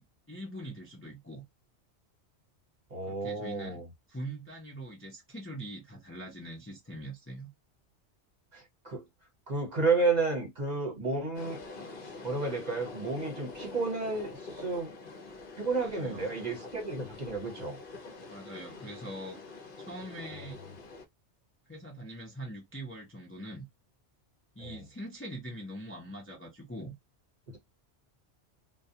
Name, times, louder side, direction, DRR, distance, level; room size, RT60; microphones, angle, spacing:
voice 1, 0.0-1.4 3.1-3.8 4.1-7.5 15.8-16.2 18.3-19.4 19.8-20.6 21.7-23.7 24.6-26.9, right 1 dB, 15° left, 0.5 m, -43 dB
voice 2, 2.9-3.9 8.5-9.0 9.5-11.6 12.0-14.9 15.6-17.8 20.3-20.4 24.6-24.8 27.5-27.6, right 3 dB, 40° right, 1.1 m, -32 dB
sound 1, 11.3-21.0, left 3 dB, 55° left, 0.8 m, -45 dB
2.2 x 2.2 x 2.7 m
omnidirectional pair, 1.2 m